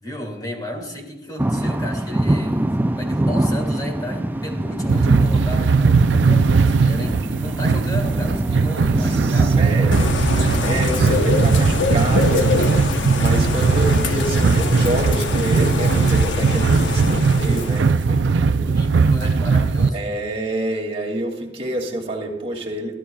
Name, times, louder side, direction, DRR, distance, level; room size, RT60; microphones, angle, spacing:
voice 1, 0.0-9.6 18.6-20.0, left 1 dB, 20° left, 1 dB, 2.4 m, -33 dB
sound 1, 1.4-13.8, right 1 dB, 10° right, 0.3 m, -25 dB
sound 2, 4.9-19.9, right 4 dB, 75° right, 0.5 m, -19 dB
voice 2, 9.0-10.1 10.6-12.5 13.2-18.7 19.9-22.9, right 1 dB, 35° right, -2 dB, 2.5 m, -28 dB
Bird / Rain, 9.9-18.1, left 3 dB, 80° left, 1.0 m, -24 dB
23.0 x 12.5 x 2.4 m, 0.98 s
head